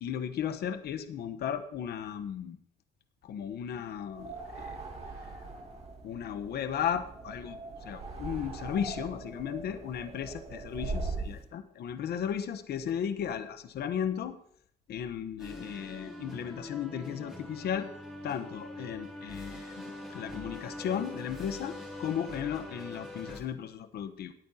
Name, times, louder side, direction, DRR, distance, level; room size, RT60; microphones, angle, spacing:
voice 1, 0.0-2.6 3.2-4.8 6.0-14.4 14.9-17.9 18.2-24.3, left 8 dB, 65° left, 10 dB, 1.0 m, -35 dB
sound 1, 4.1-11.4, right 3 dB, 35° right, 2.3 m, -40 dB
sound 2, 15.4-23.4, left 1 dB, 5° right, 3.0 m, -43 dB
19.5 x 8.7 x 2.8 m, 0.68 s
cardioid pair, 115°, 18 cm